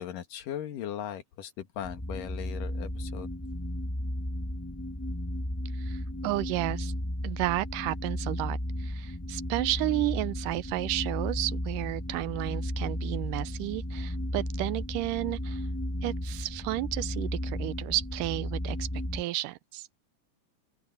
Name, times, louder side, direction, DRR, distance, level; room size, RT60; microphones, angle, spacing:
voice 1, 0.0-3.3, left 10 dB, 90° left, 3.3 m, -38 dB
sound 1, 1.8-19.2, left 1 dB, 10° left, 0.7 m, -34 dB
voice 2, 5.8-6.9 7.2-15.6 16.0-18.9 19.1-19.9, right 18 dB, 90° right, 2.3 m, -32 dB
open air
omnidirectional pair, 3.7 m